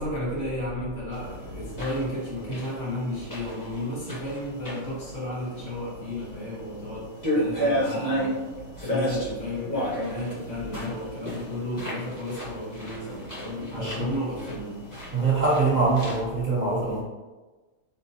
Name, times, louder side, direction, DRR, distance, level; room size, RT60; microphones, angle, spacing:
voice 1, 0.0-7.0 7.3-8.3 8.8-14.8, left 1 dB, 60° left, -8 dB, 1.9 m, -33 dB
sound 1, 1.1-16.2, equal, 15° left, 1.1 m, -33 dB
voice 2, 13.7-14.1 15.1-17.0, right 3 dB, 40° right, -6 dB, 0.7 m, -24 dB
4.1 x 3.7 x 2.8 m, 1.2 s
omnidirectional pair, 1.4 m